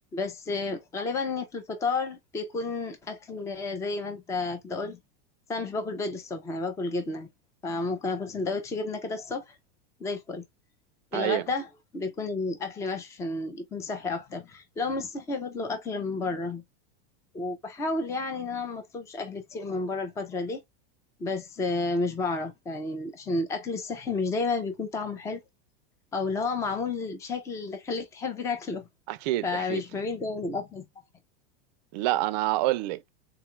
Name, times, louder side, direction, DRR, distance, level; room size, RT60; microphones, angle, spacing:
voice 1, 0.1-5.0 5.5-7.3 7.6-9.5 10.0-10.4 11.1-16.6 17.3-20.6 21.2-25.4 26.1-28.9 29.4-30.8, left 3 dB, 10° left, 0.5 m, -31 dB
voice 2, 11.1-11.4 29.1-29.8 31.9-33.1, right 17 dB, 45° right, 0.5 m, -27 dB
3.7 x 2.3 x 3.0 m
supercardioid pair, 160°, 30 cm